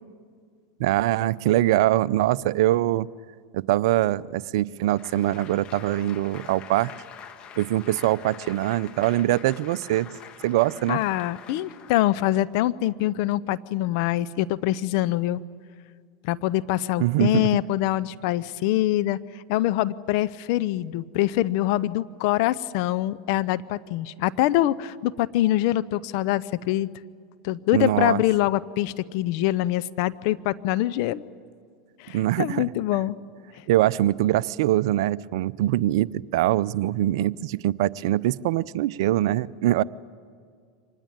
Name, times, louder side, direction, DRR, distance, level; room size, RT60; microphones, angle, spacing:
voice 1, 0.8-3.1 3.5-6.9 7.6-10.1 10.4-11.0 17.0-17.5 27.7-28.2 32.1-32.7 33.7-39.8, right 14 dB, 65° right, 19 dB, 0.6 m, -23 dB
Applause, 4.8-12.6, left 8 dB, 40° left, 1.7 m, -45 dB
voice 2, 10.9-15.4 16.2-19.2 19.5-26.9 27.4-31.2 32.0-33.2, left 15 dB, 60° left, 16 dB, 0.8 m, -24 dB
25.0 x 20.0 x 9.0 m, 2.1 s
hypercardioid pair, 100°, 3 cm